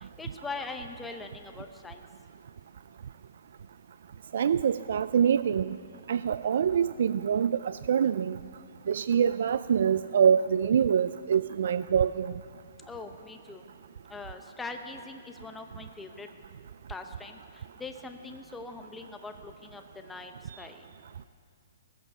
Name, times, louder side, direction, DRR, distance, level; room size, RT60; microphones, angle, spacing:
voice 1, 0.2-2.0 12.8-13.6 14.1-16.3 16.9-17.4 17.8-20.3 20.6-20.8, left 3 dB, 5° left, 5 dB, 0.8 m, -41 dB
voice 2, 4.3-5.8 6.1-8.4 8.9-12.3, right 8 dB, 60° right, 15 dB, 0.3 m, -25 dB
17.0 x 14.5 x 5.5 m, 2.3 s
hypercardioid pair, 165°, 0 cm